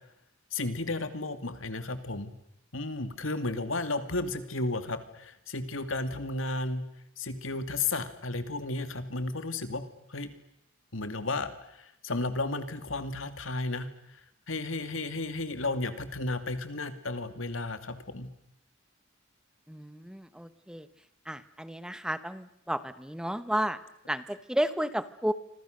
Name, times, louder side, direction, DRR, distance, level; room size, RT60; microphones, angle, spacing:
voice 1, 0.5-2.3 2.7-6.8 7.2-9.8 10.1-10.3 10.9-14.2 14.5-18.3, left 2 dB, 90° left, 9 dB, 2.5 m, -33 dB
voice 2, 19.7-20.9 21.2-23.8 24.1-25.3, equal, 5° right, 13 dB, 1.1 m, -32 dB
29.0 x 25.0 x 6.7 m, 0.81 s
head